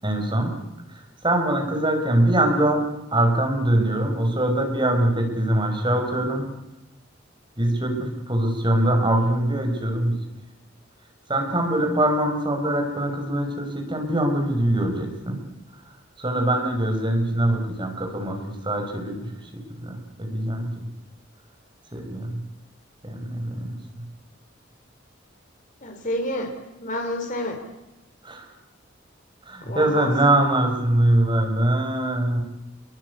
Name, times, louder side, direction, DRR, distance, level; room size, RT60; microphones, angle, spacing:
voice 1, 0.0-0.5 1.2-2.8 3.1-6.4 7.6-10.2 11.3-15.4 16.2-18.4 18.6-19.3 19.8-20.9 21.9-22.4 23.0-24.0 28.2-28.5 29.5-32.4, right 1 dB, 25° right, 3 dB, 5.8 m, -23 dB
voice 2, 25.8-27.6 29.6-30.1, left 1 dB, 40° left, 4 dB, 3.7 m, -29 dB
27.0 x 23.0 x 8.4 m, 0.97 s
head